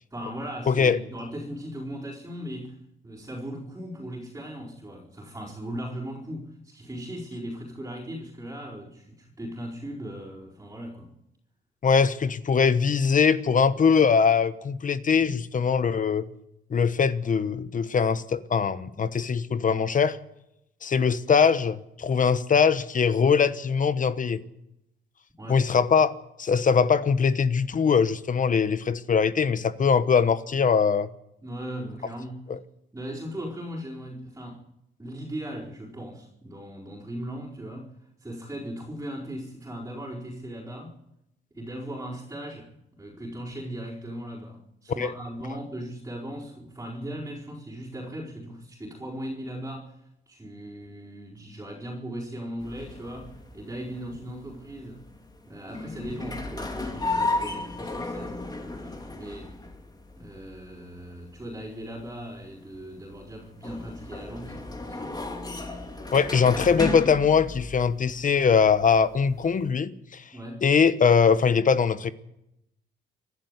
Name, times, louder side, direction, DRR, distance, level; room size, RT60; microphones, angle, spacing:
voice 1, 0.1-2.8 3.0-11.1 15.2-15.3 25.4-25.6 31.4-32.5 32.9-34.7 35.0-37.9 38.2-40.9 41.5-49.9 50.3-55.0 55.5-59.5 60.2-65.1 70.3-70.7, equal, 15° right, 4.6 m, -38 dB
voice 2, 0.7-1.0 11.8-16.3 16.7-20.2 20.8-24.4 25.5-26.1 26.4-31.1 32.5-32.6 45.0-45.1 66.1-70.2 70.6-72.1, left 6 dB, 40° left, 1.2 m, -22 dB
sound 1, 52.6-69.7, left 2 dB, 20° left, 2.7 m, -35 dB
29.5 x 12.0 x 8.3 m
cardioid pair, 90°, 20 cm